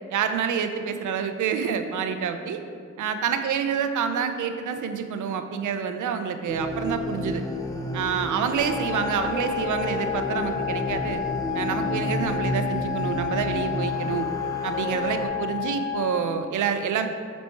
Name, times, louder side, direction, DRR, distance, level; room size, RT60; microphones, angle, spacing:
voice 1, 0.1-2.6 3.0-7.4 7.9-11.2 11.5-14.3 14.6-17.1, right 7 dB, 80° right, 8 dB, 0.6 m, -27 dB
sound 1, 6.5-15.3, left 1 dB, 10° left, 1.1 m, -31 dB
sound 2, 8.6-16.2, left 11 dB, 60° left, 1.8 m, -31 dB
8.4 x 4.3 x 4.5 m, 2.2 s
cardioid pair, 60°, 30 cm